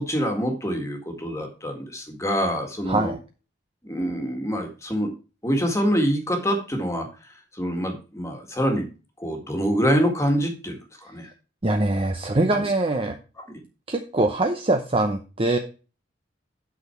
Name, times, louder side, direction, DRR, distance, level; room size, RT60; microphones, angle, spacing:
voice 1, 0.0-3.1 3.8-5.1 5.4-7.1 7.6-8.9 9.2-11.3 12.5-12.6 13.4-13.5, equal, 15° left, 3 dB, 1.8 m, -25 dB
voice 2, 2.9-3.2 11.6-13.2 13.9-15.6, right 2 dB, 30° right, 5 dB, 0.8 m, -23 dB
8.7 x 6.1 x 4.6 m, 0.33 s
head